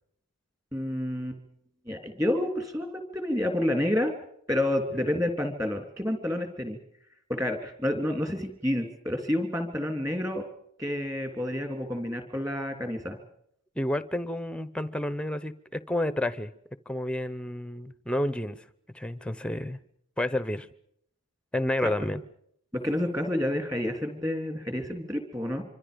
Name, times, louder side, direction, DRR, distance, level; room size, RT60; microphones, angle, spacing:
voice 1, 0.7-1.4 1.8-4.1 4.5-6.8 7.3-10.4 10.8-13.2 21.8-21.9 22.7-25.6, left 1 dB, 15° right, 6 dB, 3.3 m, -29 dB
voice 2, 13.8-16.5 16.9-18.6 18.9-19.8 20.2-20.7 21.5-22.2, left 1 dB, 5° left, 15 dB, 0.9 m, -30 dB
26.0 x 25.0 x 5.3 m, 0.70 s
head